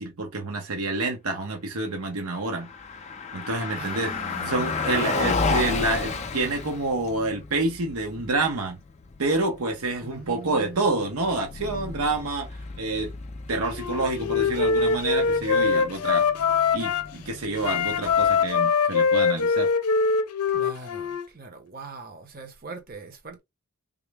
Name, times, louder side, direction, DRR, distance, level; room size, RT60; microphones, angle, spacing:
voice 1, 0.0-2.7 3.3-4.1 4.5-8.8 9.2-12.5 12.8-13.1 13.5-16.3 16.7-19.7, right 2 dB, 80° right, 0.8 m, -28 dB
Car passing by, 2.4-18.5, left 4 dB, 30° left, 0.4 m, -33 dB
voice 2, 3.8-4.7 10.0-11.3 20.5-23.4, right 3 dB, 40° right, 0.8 m, -41 dB
Wind instrument woodwind instrument, 13.7-17.1 17.6-21.2, left 5 dB, 90° left, 0.5 m, -23 dB
3.5 x 2.1 x 3.4 m
head